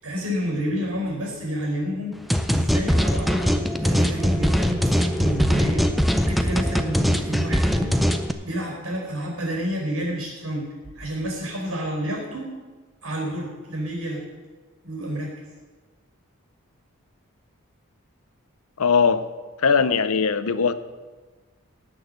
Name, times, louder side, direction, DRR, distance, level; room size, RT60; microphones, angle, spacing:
voice 1, 0.0-2.2 2.5-8.2 8.5-12.5 13.0-14.2 14.8-15.3, equal, 80° right, 0 dB, 4.5 m, -29 dB
sound 1, 2.3-8.3, equal, ahead, 0.5 m, -21 dB
voice 2, 18.8-19.3 19.6-20.7, left 5 dB, 80° left, 13 dB, 0.7 m, -20 dB
18.0 x 6.3 x 6.6 m, 1.3 s
head